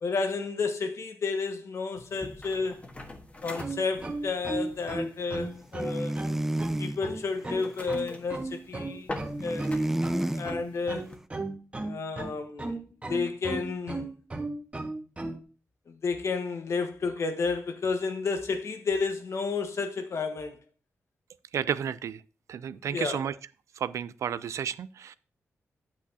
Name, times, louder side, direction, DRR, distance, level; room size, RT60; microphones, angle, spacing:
voice 1, 0.0-2.8 3.4-6.2 6.8-9.1 9.4-9.7 10.0-11.1 11.8-12.8 13.1-14.1 15.9-20.6 22.9-23.2, left 4 dB, 70° left, 1.2 m, -31 dB
sound 1, 2.0-11.2, left 2 dB, 25° left, 1.4 m, -45 dB
sound 2, 3.5-15.4, right 2 dB, 25° right, 1.6 m, -35 dB
sound 3, 5.8-7.0 9.4-10.5, right 1 dB, 5° right, 0.4 m, -30 dB
voice 2, 21.5-22.2 22.5-23.3 23.8-25.2, right 8 dB, 85° right, 0.4 m, -32 dB
8.4 x 8.4 x 2.8 m
cardioid pair, 80°, 5 cm